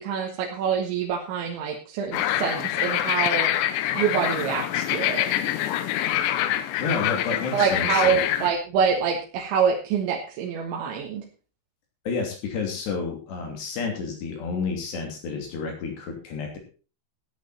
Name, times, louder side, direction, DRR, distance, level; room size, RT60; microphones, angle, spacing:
voice 1, 0.0-3.5 4.0-5.3 7.5-11.2, right 6 dB, 75° right, 0 dB, 3.7 m, -26 dB
sound 1, 2.1-8.5, left 12 dB, 75° left, 2.8 m, -25 dB
voice 2, 6.8-8.2 12.1-16.6, left 4 dB, 60° left, 3 dB, 4.8 m, -30 dB
14.0 x 10.0 x 4.3 m, 0.35 s
omnidirectional pair, 5.7 m